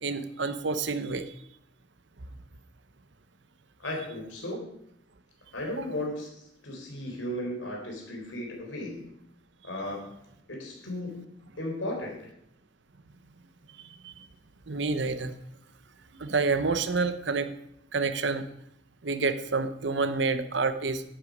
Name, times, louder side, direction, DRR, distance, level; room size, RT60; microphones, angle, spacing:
voice 1, 0.0-1.3 5.8-5.9 13.8-14.3 14.7-15.3 16.1-17.5 17.9-18.4 19.0-21.0, right 4 dB, 65° right, 11 dB, 0.9 m, -28 dB
voice 2, 3.8-4.6 5.5-9.1 9.6-10.1 10.5-12.3, left 1 dB, 80° left, 1 dB, 4.0 m, -35 dB
11.5 x 8.9 x 5.3 m, 0.76 s
head